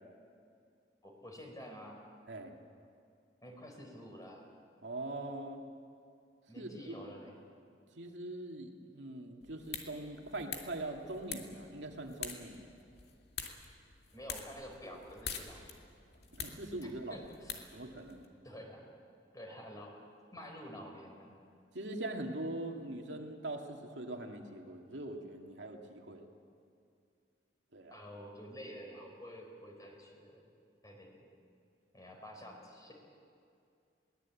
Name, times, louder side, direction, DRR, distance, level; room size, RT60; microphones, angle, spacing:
voice 1, 1.0-2.0 3.4-4.5 6.5-7.3 14.1-15.7 16.8-17.6 18.4-18.8 19.3-19.9 20.3-21.3 27.9-30.4 30.8-31.2 31.9-32.9, equal, 20° left, 1 dB, 4.3 m, -49 dB
voice 2, 4.8-5.6 6.6-6.9 7.9-12.7 16.3-17.2 17.7-18.3 21.7-26.3 27.7-28.0, right 2 dB, 85° right, 2 dB, 2.3 m, -42 dB
sound 1, 9.4-18.3, left 6 dB, 65° left, 2.3 m, -47 dB
22.5 x 18.5 x 8.5 m, 2.4 s
head